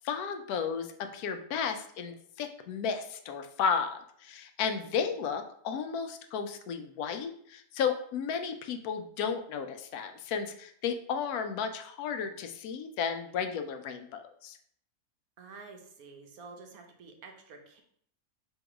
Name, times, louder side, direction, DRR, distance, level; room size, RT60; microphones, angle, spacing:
voice 1, 0.0-14.6, left 6 dB, 80° left, 7 dB, 1.1 m, -33 dB
voice 2, 4.6-5.2 15.4-17.8, right 4 dB, 70° right, 3 dB, 1.2 m, -50 dB
3.6 x 3.0 x 4.7 m, 0.64 s
omnidirectional pair, 1.6 m